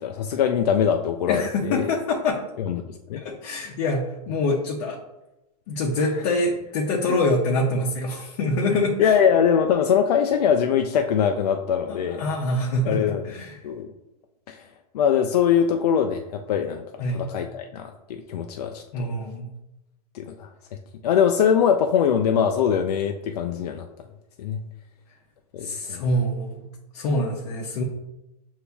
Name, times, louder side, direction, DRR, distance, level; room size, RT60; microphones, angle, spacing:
voice 1, 0.0-1.9 2.6-3.2 6.0-6.1 7.1-7.2 8.7-12.2 12.9-13.2 13.6-13.9 14.5-14.7 14.9-19.1 20.1-20.5 21.0-23.9 24.4-24.6 25.5-26.0, left 8 dB, 80° left, 4 dB, 0.4 m, -22 dB
voice 2, 1.3-2.4 3.2-5.0 5.7-9.2 11.9-13.6 17.0-17.3 18.9-19.5 25.6-26.7 26.9-27.8, left 2 dB, 55° left, -2 dB, 0.8 m, -25 dB
6.6 x 2.7 x 2.3 m, 0.94 s
hypercardioid pair, 120°, 20 cm